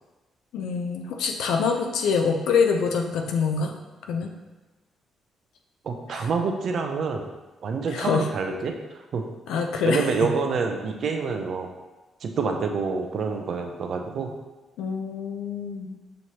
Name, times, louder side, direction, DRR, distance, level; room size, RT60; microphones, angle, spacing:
voice 1, 0.5-3.7 4.1-4.3 6.1-6.3 7.9-8.3 9.5-10.3 14.8-16.0, left 5 dB, 80° left, 3 dB, 0.5 m, -25 dB
voice 2, 5.8-7.3 7.6-9.2 9.8-11.7 12.2-14.3, right 5 dB, 50° right, 4 dB, 0.5 m, -27 dB
6.3 x 3.0 x 2.8 m, 1.1 s
cardioid pair, 140°, 0 cm